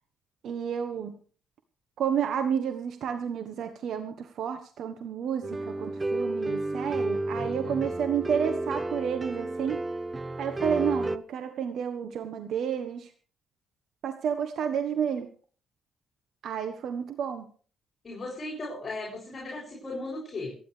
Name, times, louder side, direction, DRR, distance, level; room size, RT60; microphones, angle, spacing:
voice 1, 0.4-1.2 2.0-9.8 10.4-13.1 14.0-15.3 16.4-17.5, right 8 dB, 70° right, 7 dB, 1.3 m, -31 dB
sound 1, 5.4-11.2, right 2 dB, 25° right, 0.8 m, -31 dB
voice 2, 7.3-7.8 18.0-20.6, left 2 dB, 35° left, -5 dB, 7.2 m, -37 dB
27.5 x 10.5 x 3.4 m, 0.43 s
cardioid pair, 90°, 0 cm